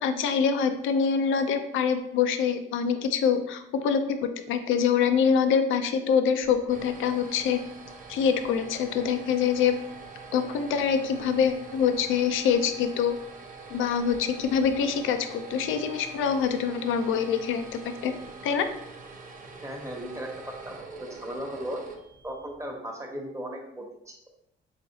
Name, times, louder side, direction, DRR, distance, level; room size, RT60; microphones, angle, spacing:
voice 1, 0.0-7.6 8.1-9.8 10.3-13.2 13.7-18.1 18.4-18.7, left 7 dB, 80° left, 8 dB, 0.5 m, -25 dB
sound 1, 6.4-22.6, right 4 dB, 40° right, 0.8 m, -44 dB
voice 2, 19.6-21.8 22.2-24.2, equal, 15° right, 0 dB, 1.0 m, -37 dB
4.1 x 3.8 x 2.7 m, 0.77 s
cardioid pair, 90°, 20 cm